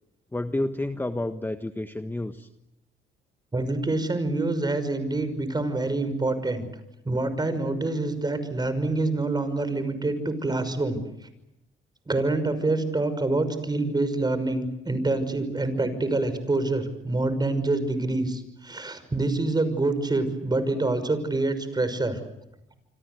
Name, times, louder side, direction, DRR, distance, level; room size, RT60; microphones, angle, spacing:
voice 1, 0.3-2.5, left 1 dB, 10° left, 8 dB, 1.4 m, -30 dB
voice 2, 3.5-6.7 7.0-11.0 12.1-22.2, right 2 dB, 20° right, 11 dB, 6.0 m, -26 dB
27.5 x 25.5 x 8.2 m, 0.86 s
cardioid pair, 90°, 20 cm